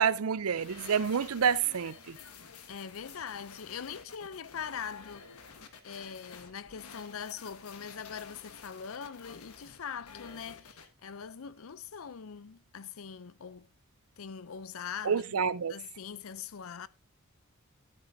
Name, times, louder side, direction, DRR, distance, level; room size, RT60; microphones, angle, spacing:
voice 1, 0.0-2.2 15.0-15.7, right 7 dB, 80° right, 0.5 m, -28 dB
sound 1, 0.6-10.9, left 5 dB, 85° left, 1.3 m, -51 dB
voice 2, 2.7-5.3 5.8-13.7 14.2-15.4 15.7-16.9, left 7 dB, 70° left, 0.5 m, -42 dB
12.5 x 8.7 x 2.7 m
head